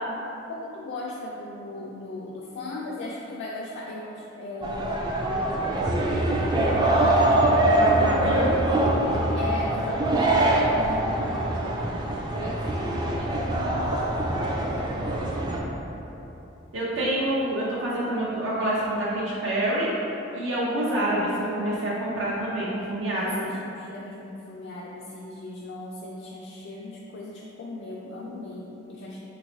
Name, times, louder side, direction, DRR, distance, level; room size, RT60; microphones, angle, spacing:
voice 1, 0.5-6.4 7.0-7.1 8.7-11.7 12.4-12.7 13.2-14.8 23.1-29.2, left 2 dB, 60° left, -4 dB, 0.3 m, -38 dB
sound 1, 4.6-15.6, right 1 dB, 20° right, 0.3 m, -23 dB
voice 2, 7.8-8.6 16.7-19.9 20.3-23.4, right 1 dB, 80° right, -7 dB, 0.6 m, -27 dB
4.2 x 3.0 x 2.7 m, 3.0 s
head